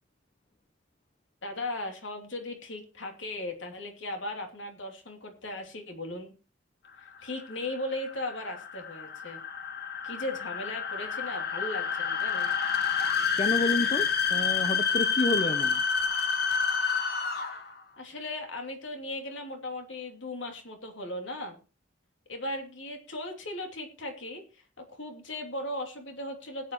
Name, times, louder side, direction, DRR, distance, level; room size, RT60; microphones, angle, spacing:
voice 1, 1.4-6.3 7.0-9.4 10.0-12.5 17.5-17.6 18.0-21.6 22.3-26.7, left 1 dB, 75° left, 3 dB, 3.0 m, -37 dB
sound 1, 7.1-17.7, left 6 dB, 55° left, 1.6 m, -29 dB
voice 2, 13.4-15.8, left 2 dB, 35° left, 10 dB, 0.7 m, -29 dB
19.5 x 8.9 x 3.0 m, 0.33 s
head